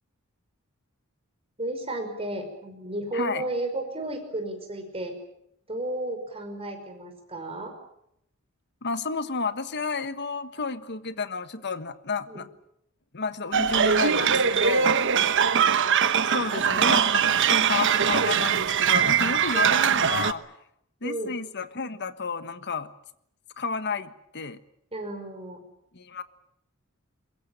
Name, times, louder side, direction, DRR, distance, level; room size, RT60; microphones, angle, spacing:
voice 1, 1.6-5.2 5.7-7.8 12.2-12.4 19.5-19.6 21.0-21.3 24.9-25.6, right 1 dB, 25° right, 4 dB, 5.5 m, -33 dB
voice 2, 3.1-3.4 8.8-12.5 13.1-15.0 16.2-20.4 21.0-22.9 23.6-24.6 25.9-26.2, left 4 dB, 55° left, 12 dB, 1.4 m, -31 dB
sound 1, 13.5-20.3, right 7 dB, 60° right, 1.0 m, -22 dB
22.5 x 22.0 x 8.8 m, 0.75 s
head